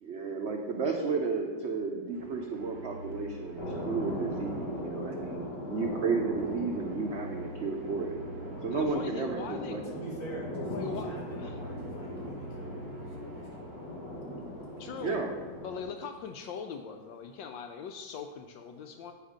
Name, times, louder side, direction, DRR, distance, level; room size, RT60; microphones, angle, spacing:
voice 1, 0.0-8.1 8.6-9.4 9.7-10.0 15.0-15.3, right 4 dB, 80° right, 1 dB, 0.6 m, -33 dB
sound 1, 2.1-15.2, right 1 dB, 30° right, 0.9 m, -46 dB
sound 2, 3.6-15.8, left 1 dB, 60° left, 2.2 m, -39 dB
voice 2, 8.7-9.8 10.7-11.7 14.8-15.2 15.6-19.1, left 6 dB, 75° left, 5 dB, 1.2 m, -40 dB
voice 3, 9.7-14.8, right 1 dB, 40° left, -5 dB, 2.6 m, -45 dB
8.7 x 5.0 x 5.0 m, 1.4 s
omnidirectional pair, 2.1 m